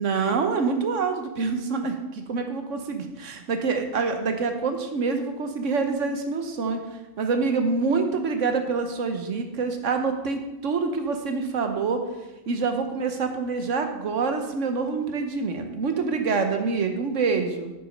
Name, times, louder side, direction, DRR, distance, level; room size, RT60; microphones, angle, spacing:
voice 1, 0.0-6.8 7.2-12.0 12.5-17.7, right 4 dB, 70° right, 6 dB, 1.2 m, -26 dB
8.9 x 6.0 x 5.3 m, 1.0 s
omnidirectional pair, 1.4 m